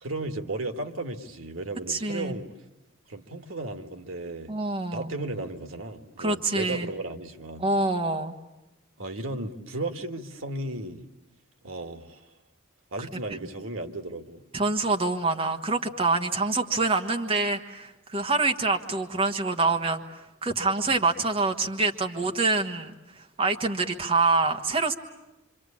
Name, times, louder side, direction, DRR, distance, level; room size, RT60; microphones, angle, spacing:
voice 1, 0.0-2.5 3.1-4.5 4.9-7.6 9.0-11.0 11.6-12.3 12.9-14.4, right 2 dB, 85° right, 7 dB, 1.7 m, -35 dB
voice 2, 1.9-2.4 4.5-5.1 6.2-6.9 7.6-8.3 14.5-24.9, right 3 dB, 30° right, 3 dB, 1.4 m, -26 dB
26.5 x 26.0 x 8.6 m, 1.0 s
head